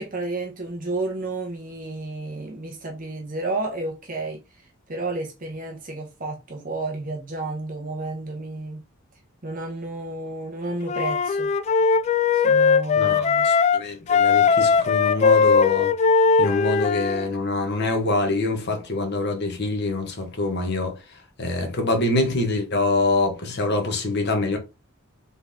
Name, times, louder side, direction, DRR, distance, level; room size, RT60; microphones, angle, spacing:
voice 1, 0.0-4.4 4.9-8.8 9.4-11.5 12.3-13.5, right 2 dB, 45° right, 1.0 m, -31 dB
Wind instrument woodwind instrument, 10.9-13.8 14.1-17.2, left 5 dB, 35° left, 0.3 m, -19 dB
voice 2, 13.0-15.9 16.4-20.9 21.4-24.6, left 2 dB, 55° left, 1.3 m, -25 dB
4.0 x 3.5 x 3.6 m
head